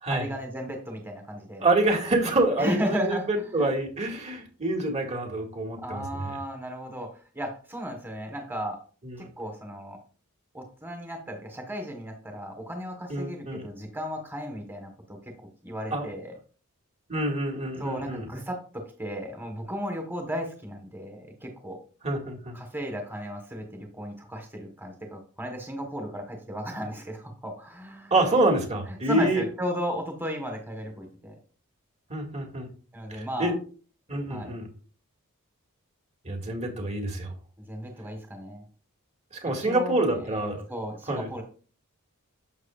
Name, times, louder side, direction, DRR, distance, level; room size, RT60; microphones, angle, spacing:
voice 1, 0.1-1.6 2.6-3.7 5.8-7.1 7.3-8.8 9.2-10.0 10.5-15.2 15.6-16.4 17.8-21.8 22.5-28.1 29.1-31.3 32.9-33.5 34.3-34.5 37.6-38.6 39.4-41.4, equal, 10° right, 3 dB, 1.4 m, -35 dB
voice 2, 1.6-6.4 9.0-9.3 13.1-13.6 15.9-16.1 17.1-18.3 22.0-22.6 28.1-29.4 32.1-32.7 33.1-33.5 34.1-34.7 36.2-37.3 39.3-40.6 41.1-41.3, right 2 dB, 30° right, 2 dB, 2.1 m, -27 dB
11.0 x 7.5 x 2.5 m, 0.39 s
head